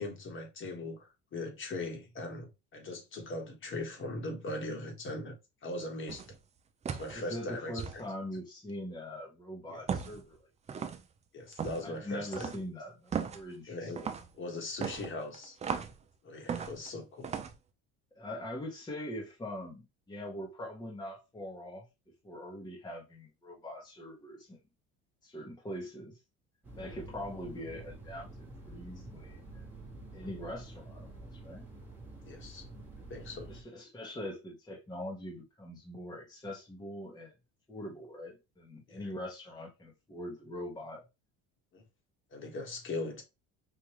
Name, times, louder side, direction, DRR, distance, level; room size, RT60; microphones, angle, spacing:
voice 1, 0.0-6.2 6.9-8.0 9.7-9.8 11.3-12.5 13.7-14.1 14.3-15.6 16.2-17.3 32.3-32.7 33.1-33.7 38.9-39.1 41.7-41.8 42.3-43.2, left 2 dB, 40° left, 1.4 m, -40 dB
sound 1, 6.1-6.4 6.9-7.2 7.8-8.0 9.9-10.2 10.7-11.0 11.5-11.9 12.3-12.6 13.1-13.4 14.0-14.3 14.8-16.0 16.5-16.9 17.2-17.5, right 6 dB, 20° right, 0.4 m, -36 dB
voice 2, 7.1-10.4 11.8-13.9 18.1-21.8 22.2-24.6 25.2-26.2 26.8-29.6 30.1-31.7 33.5-37.3 37.7-41.0, left 1 dB, 10° left, 1.0 m, -42 dB
sound 2, 26.6-33.6, right 2 dB, 5° right, 1.2 m, -48 dB
4.9 x 2.5 x 2.9 m
cardioid pair, 120°, 32 cm